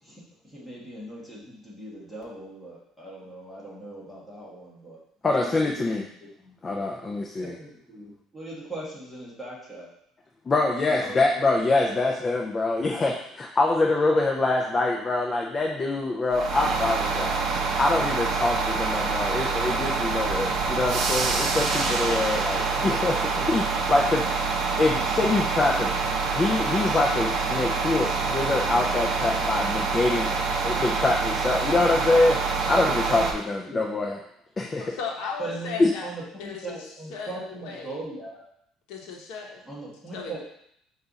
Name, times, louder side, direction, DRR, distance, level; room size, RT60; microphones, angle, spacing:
voice 1, 0.0-6.5 7.4-9.9 10.8-11.8 33.7-33.9 35.4-38.4 39.6-40.4, right 2 dB, ahead, -7 dB, 1.2 m, -40 dB
voice 2, 5.2-6.1 6.6-7.6 10.5-17.3 17.8-24.2 24.8-25.9 26.3-30.3 30.6-34.2 34.6-34.8 35.8-35.9, left 2 dB, 20° left, -1 dB, 0.4 m, -25 dB
sound 1, 16.3-33.3, right 4 dB, 45° right, 0.6 m, -26 dB
voice 3, 21.9-22.7 34.8-36.1 36.4-38.0 38.9-39.6 40.1-40.4, left 5 dB, 75° left, 1 dB, 0.8 m, -36 dB
5.3 x 2.4 x 3.9 m, 0.72 s
cardioid pair, 165°, 0 cm